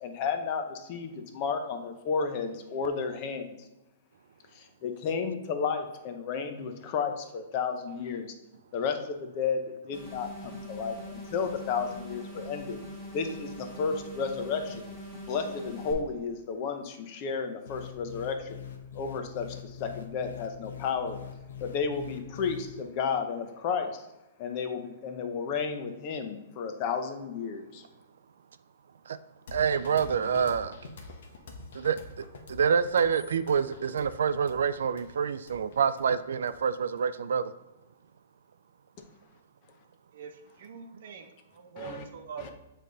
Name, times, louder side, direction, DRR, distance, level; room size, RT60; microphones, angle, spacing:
voice 1, 0.0-3.6 4.5-8.3 8.7-12.8 13.1-14.9 15.3-18.6 18.9-21.2 21.6-24.1 24.4-27.8 41.8-42.0 42.4-42.5, left 5 dB, 35° left, 6 dB, 0.7 m, -32 dB
sound 1, 9.9-15.9, equal, 10° left, 1.6 m, -42 dB
sound 2, 17.7-22.8, left 9 dB, 85° left, 0.8 m, -43 dB
sound 3, 29.5-37.0, left 3 dB, 65° left, 1.1 m, -46 dB
voice 2, 29.5-30.7 31.7-32.0 32.5-37.5, right 7 dB, 85° right, 13 dB, 0.3 m, -27 dB
voice 3, 40.1-42.5, right 7 dB, 60° right, 6 dB, 0.8 m, -44 dB
7.4 x 3.3 x 3.9 m, 1.0 s
hypercardioid pair, 160°, 0 cm